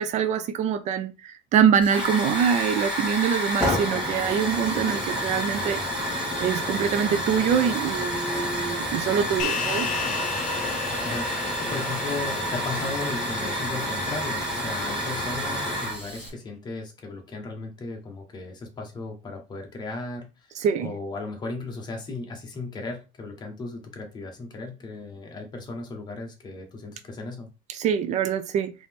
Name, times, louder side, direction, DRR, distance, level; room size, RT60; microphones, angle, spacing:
voice 1, 0.0-5.8 6.4-9.9 20.6-20.9 27.7-28.7, right 7 dB, 50° right, 0.5 m, -24 dB
Hiss / Fire, 1.8-16.3, equal, 5° right, 2.1 m, -29 dB
sound 1, 9.4-14.0, left 7 dB, 55° left, 1.1 m, -34 dB
voice 2, 9.5-9.9 11.0-11.3 11.6-27.5, left 3 dB, 25° left, 1.2 m, -36 dB
4.0 x 3.0 x 3.6 m
cardioid pair, 140°, 16 cm